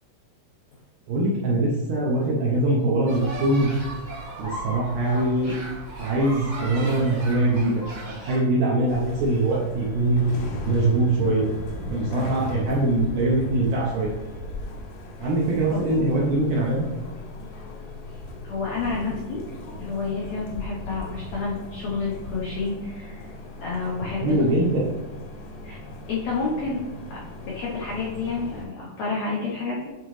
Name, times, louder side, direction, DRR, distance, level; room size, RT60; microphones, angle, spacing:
voice 1, 1.1-3.8 4.4-5.6 6.0-10.2 10.7-11.5 11.9-14.1 15.2-16.9 24.2-24.8, right 2 dB, 75° right, -4 dB, 1.9 m, -22 dB
sound 1, 3.1-8.4, right 1 dB, 45° right, 0.9 m, -37 dB
sound 2, 8.9-28.7, left 1 dB, 75° left, 1.9 m, -37 dB
voice 2, 18.4-19.4 19.8-23.3 23.6-24.7 25.6-25.8 26.1-26.8 27.1-29.9, left 4 dB, 90° left, -5 dB, 1.5 m, -29 dB
8.4 x 3.9 x 3.1 m, 1.2 s
omnidirectional pair, 4.5 m